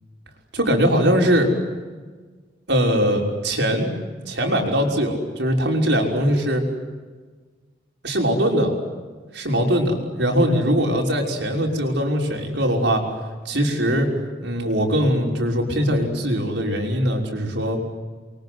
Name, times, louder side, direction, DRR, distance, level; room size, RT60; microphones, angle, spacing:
voice 1, 0.5-1.5 2.7-3.9 4.3-6.7 8.0-8.8 9.3-13.0 13.4-14.1 14.4-17.8, equal, 75° right, 1 dB, 6.0 m, -21 dB
30.0 x 24.0 x 8.0 m, 1.4 s
head